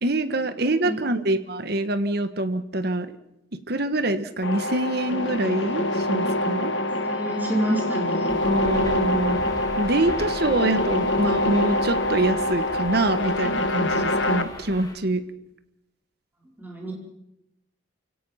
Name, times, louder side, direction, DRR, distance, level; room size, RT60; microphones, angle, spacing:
voice 1, 0.0-3.1 3.7-6.7 8.4-9.4 9.8-15.2, right 2 dB, 55° right, 10 dB, 1.5 m, -25 dB
sound 1, 4.4-14.4, left 1 dB, 70° left, 1.7 m, -25 dB
voice 2, 7.0-8.3 16.6-16.9, right 1 dB, 10° right, -2 dB, 5.0 m, -27 dB
sound 2, 8.3-14.9, left 1 dB, 20° left, 3.6 m, -39 dB
29.0 x 17.0 x 5.8 m, 0.82 s
head